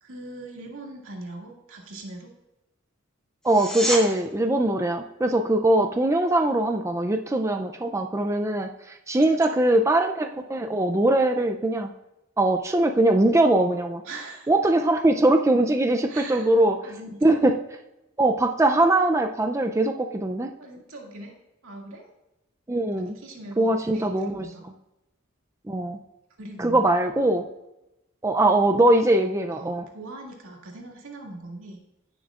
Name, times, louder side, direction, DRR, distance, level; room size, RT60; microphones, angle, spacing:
voice 1, 0.0-2.3 9.3-9.6 14.0-14.7 16.1-16.5 16.8-17.4 20.6-21.3 21.6-22.1 23.1-24.6 26.4-26.8 29.5-31.8, right 2 dB, 85° right, -1 dB, 2.2 m, -41 dB
sound 1, 3.4-4.0 15.4-15.5, equal, 5° left, 1.9 m, -28 dB
voice 2, 3.4-11.9 12.4-14.0 14.5-16.8 17.2-17.5 18.2-20.5 22.7-23.1 23.6-24.4 25.7-26.0 26.6-27.4 28.2-29.8, right 1 dB, 15° right, 4 dB, 0.4 m, -21 dB
16.0 x 6.9 x 2.4 m, 0.93 s
head